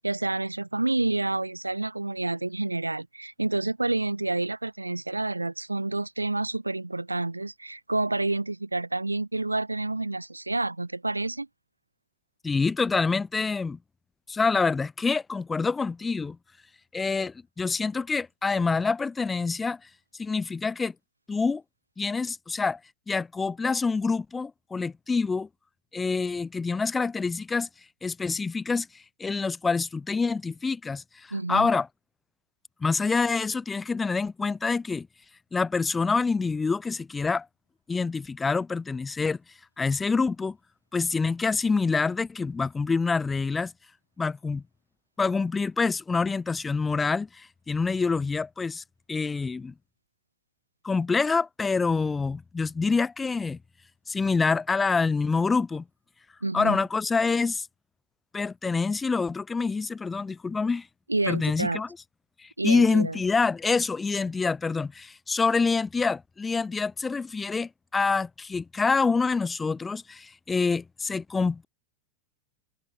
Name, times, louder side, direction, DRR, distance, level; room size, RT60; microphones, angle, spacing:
voice 1, 0.0-11.5 31.3-31.7 56.4-56.8 61.1-61.8 62.6-63.2, right 2 dB, 85° right, 1.5 m, -29 dB
voice 2, 12.4-13.8 14.3-16.4 16.9-19.8 20.2-20.9 21.3-21.6 22.0-22.8 23.1-25.5 25.9-27.7 28.0-31.9 32.8-35.1 35.5-37.5 37.9-39.4 39.8-40.6 40.9-43.7 44.2-44.6 45.2-48.8 49.1-49.7 50.8-53.6 54.1-55.8 56.5-57.7 58.3-60.9 61.3-61.9 62.4-71.7, left 4 dB, 15° left, 1.0 m, -26 dB
figure-of-eight pair, 90°, 0 cm